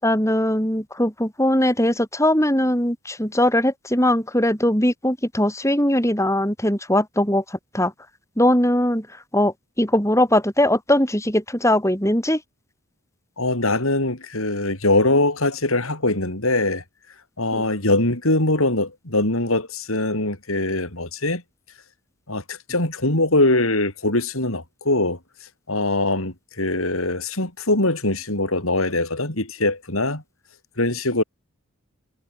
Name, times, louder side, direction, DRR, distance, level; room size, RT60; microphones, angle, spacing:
voice 1, 0.0-7.4 7.7-7.9 8.4-9.1 9.3-12.4 17.5-17.6, left 1 dB, 15° left, 7.4 m, -20 dB
voice 2, 13.4-16.8 17.4-21.4 22.3-25.2 25.7-30.2 30.8-31.2, left 2 dB, 75° left, 5.8 m, -22 dB
head